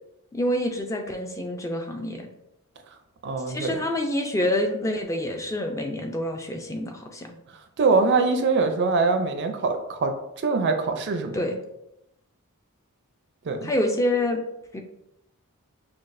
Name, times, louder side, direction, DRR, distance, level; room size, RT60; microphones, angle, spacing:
voice 1, 0.3-2.3 3.5-7.4 11.3-11.6 13.6-14.4 14.7-14.8, left 1 dB, 15° left, 4 dB, 0.4 m, -27 dB
voice 2, 3.2-3.8 7.8-10.1 10.4-11.4 13.5-13.7, right 4 dB, 50° right, 6 dB, 0.4 m, -23 dB
5.9 x 2.3 x 2.5 m, 0.83 s
head